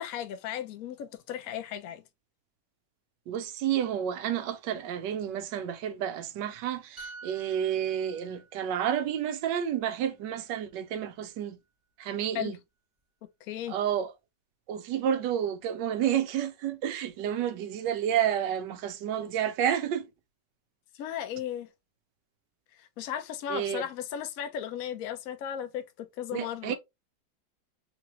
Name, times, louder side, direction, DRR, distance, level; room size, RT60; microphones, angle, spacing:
voice 1, 0.0-2.0 12.3-12.5 13.4-13.7 21.0-21.7 22.7-26.7, left 10 dB, 65° left, 1.0 m, -36 dB
voice 2, 3.3-11.6 12.0-12.6 13.7-14.1 14.7-20.1 23.5-23.9 26.3-26.7, right 9 dB, 80° right, 1.3 m, -30 dB
sound 1, 7.0-10.6 10.9-11.1, right 3 dB, 20° right, 1.0 m, -50 dB
3.8 x 2.9 x 2.8 m
omnidirectional pair, 1.9 m